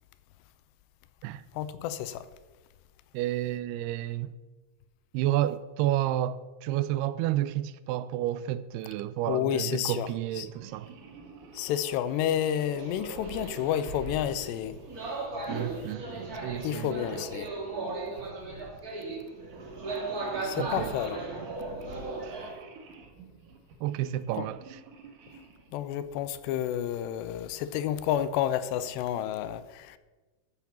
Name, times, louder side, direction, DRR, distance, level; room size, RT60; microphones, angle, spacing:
voice 1, 1.5-2.3 9.3-10.1 10.4-10.5 11.5-14.8 16.6-17.5 20.4-21.2 24.4-24.5 25.7-30.0, left 10 dB, 85° left, 2.9 m, -30 dB
voice 2, 3.1-4.4 5.1-10.9 15.5-16.0 16.4-17.0 20.6-20.9 22.2-22.4 23.8-24.8, right 13 dB, 85° right, 2.4 m, -30 dB
sound 1, 10.3-15.2 16.0-18.3 19.0-25.8, right 5 dB, 60° right, 2.6 m, -51 dB
sound 2, 12.4-22.5, right 3 dB, 30° right, 1.7 m, -37 dB
13.0 x 7.5 x 7.2 m
omnidirectional pair, 4.9 m